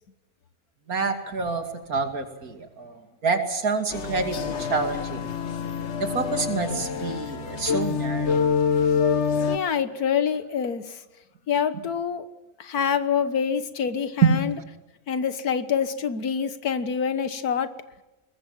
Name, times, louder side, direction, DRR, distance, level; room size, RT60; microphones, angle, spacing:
voice 1, 0.9-1.6 1.9-5.3 6.0-8.5 14.2-14.4, right 4 dB, 75° right, 6 dB, 3.0 m, -27 dB
sound 1, 3.9-9.6, left 6 dB, 50° left, 1.3 m, -26 dB
voice 2, 9.5-11.0 11.5-12.3 12.6-14.5 15.1-17.7, left 7 dB, 85° left, 12 dB, 1.8 m, -26 dB
21.5 x 21.0 x 7.5 m, 1.0 s
omnidirectional pair, 1.6 m